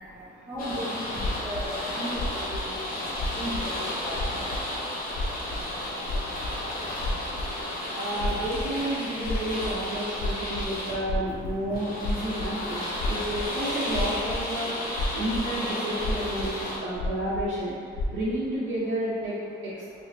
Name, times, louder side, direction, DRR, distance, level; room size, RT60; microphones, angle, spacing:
voice 1, 0.0-8.0 9.0-9.1 14.7-14.8 18.0-18.1, equal, 10° right, -8 dB, 0.6 m, -39 dB
sound 1, 0.6-16.8, left 1 dB, 50° left, 0.8 m, -33 dB
sound 2, 1.1-1.6 2.1-2.6 3.1-3.6 3.9-4.6 4.9-7.6 8.1-8.8 9.0-12.7 12.9-13.5 13.9-14.5 14.9-15.5 16.0-16.5 16.9-17.5 17.9-18.1, left 1 dB, 75° left, 0.5 m, -31 dB
voice 2, 7.9-14.7 15.1-19.3 19.6-19.7, right 1 dB, 70° right, -9 dB, 0.7 m, -31 dB
3.3 x 2.9 x 2.6 m, 2.3 s
cardioid pair, 90°, 20 cm